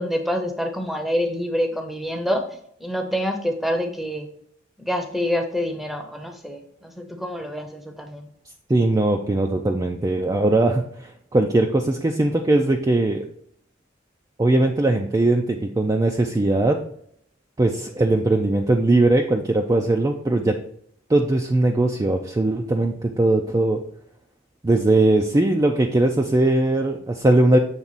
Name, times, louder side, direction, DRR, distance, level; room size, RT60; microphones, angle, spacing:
voice 1, 0.0-2.4 2.8-4.3 4.8-8.3, equal, ahead, 5 dB, 0.7 m, -26 dB
voice 2, 8.7-13.2 14.4-16.8 17.6-20.6 21.1-23.8 24.6-27.6, right 2 dB, 20° right, 3 dB, 0.4 m, -20 dB
7.3 x 3.5 x 4.0 m, 0.67 s
head